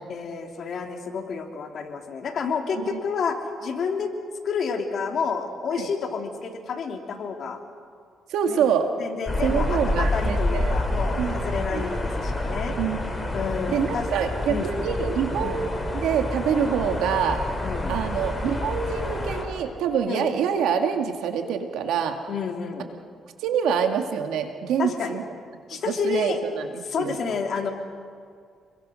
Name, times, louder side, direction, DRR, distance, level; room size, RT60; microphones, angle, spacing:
voice 1, 0.1-4.1 4.4-7.6 8.5-8.7 9.0-12.8 13.3-14.1 14.5-14.9 15.4-15.7 17.6-17.9 20.1-20.3 22.3-22.9 24.8-25.2 25.7-26.4 26.8-27.7, left 5 dB, 60° left, 4 dB, 2.9 m, -30 dB
voice 2, 8.3-8.9 9.4-10.7 11.2-11.3 11.6-11.9 12.8-13.3 13.7-17.4 17.9-22.2 23.4-25.2 25.7-26.7 27.0-27.2, right 7 dB, 85° right, 5 dB, 2.1 m, -26 dB
sound 1, 9.3-19.4, left 1 dB, 20° left, 4.6 m, -28 dB
28.5 x 22.0 x 6.5 m, 2.2 s
cardioid pair, 90°, 0 cm